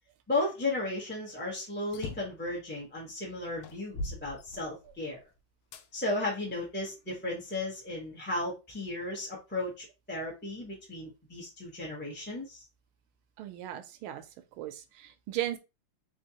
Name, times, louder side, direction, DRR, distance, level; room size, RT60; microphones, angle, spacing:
voice 1, 0.3-5.2 5.9-12.6, left 2 dB, 10° left, 0.7 m, -35 dB
sound 1, 1.9-2.4 3.1-3.2 3.6-5.1 5.7-5.9 6.6-7.6, left 2 dB, 80° left, 1.5 m, -41 dB
voice 2, 13.4-14.2 14.6-15.6, right 13 dB, 85° right, 1.5 m, -36 dB
3.5 x 3.5 x 2.8 m
omnidirectional pair, 2.3 m